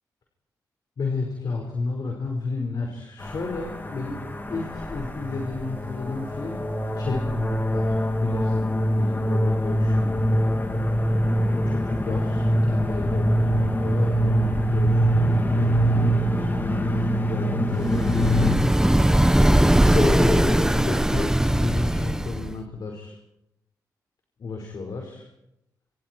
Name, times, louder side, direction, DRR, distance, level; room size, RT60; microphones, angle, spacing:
voice 1, 1.0-6.6 7.0-10.3 11.5-18.6 19.9-23.2 24.4-25.3, left 3 dB, 65° left, 1 dB, 5.1 m, -32 dB
sound 1, 3.2-18.6, equal, 25° left, 3.4 m, -23 dB
sound 2, 17.8-22.6, right 1 dB, 10° right, 1.4 m, -20 dB
27.5 x 26.5 x 4.7 m, 0.80 s
cardioid pair, 65°, 7 cm